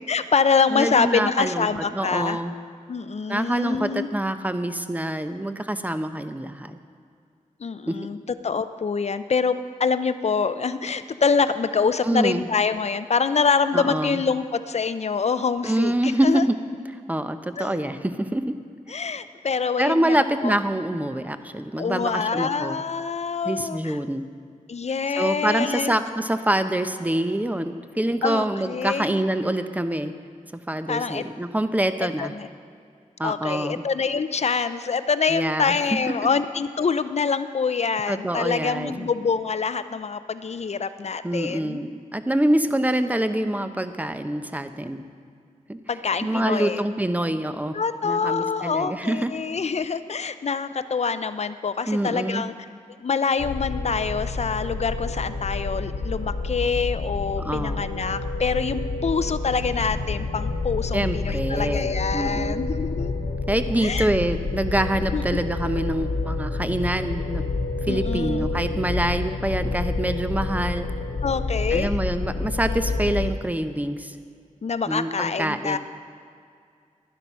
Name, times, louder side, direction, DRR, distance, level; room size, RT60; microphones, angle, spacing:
voice 1, 0.1-2.4 2.9-4.1 7.6-8.2 8.4-16.4 17.6-17.8 18.9-20.5 21.8-24.0 24.7-25.9 28.2-29.2 30.9-31.2 32.2-32.5 33.2-41.8 45.9-46.8 47.7-52.5 53.0-63.1 63.8-64.1 65.1-65.4 67.9-68.5 71.2-72.0 74.6-75.8, left 5 dB, 55° left, 12 dB, 0.5 m, -25 dB
voice 2, 0.7-2.5 3.3-6.8 7.9-8.1 12.0-12.5 13.7-14.2 15.6-16.5 17.1-18.6 19.8-22.8 23.4-24.2 25.2-30.1 30.7-32.3 33.2-33.8 35.3-35.8 38.1-39.1 41.2-45.1 45.7-45.8 46.2-47.7 48.0-49.3 51.9-52.4 57.4-57.8 60.9-62.5 63.5-67.4 67.9-70.9 71.7-74.2 74.9-75.8, right 1 dB, 10° right, 9 dB, 0.7 m, -25 dB
sound 1, 53.4-73.3, left 3 dB, 75° left, 0.9 m, -28 dB
11.5 x 11.0 x 5.6 m, 2.3 s
wide cardioid pair, 65°, 13 cm